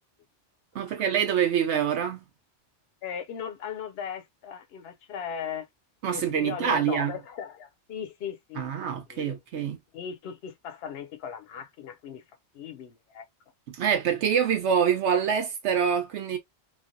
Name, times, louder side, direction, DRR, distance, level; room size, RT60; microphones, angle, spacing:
voice 1, 0.7-2.2 6.0-7.1 8.6-9.8 13.7-16.4, right 8 dB, 80° right, 0.9 m, -25 dB
voice 2, 3.0-5.7 6.1-8.6 9.1-9.4 9.9-12.2 12.5-13.2, left 7 dB, 65° left, 0.9 m, -37 dB
3.1 x 2.2 x 2.5 m
omnidirectional pair, 1.2 m